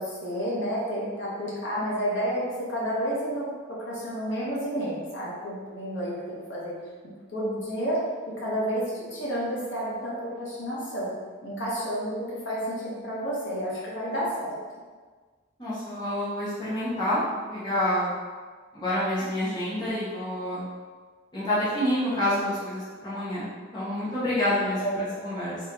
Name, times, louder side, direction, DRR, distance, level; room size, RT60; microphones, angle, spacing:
voice 1, 0.0-3.5 3.9-6.7 7.3-8.0 8.4-11.1 11.4-14.6 24.8-25.1, equal, 60° left, -7 dB, 1.1 m, -30 dB
voice 2, 15.6-17.2 17.5-18.1 18.7-20.6 21.3-23.5 23.7-25.6, left 1 dB, 20° left, -10 dB, 0.9 m, -28 dB
3.6 x 3.1 x 2.9 m, 1.5 s
head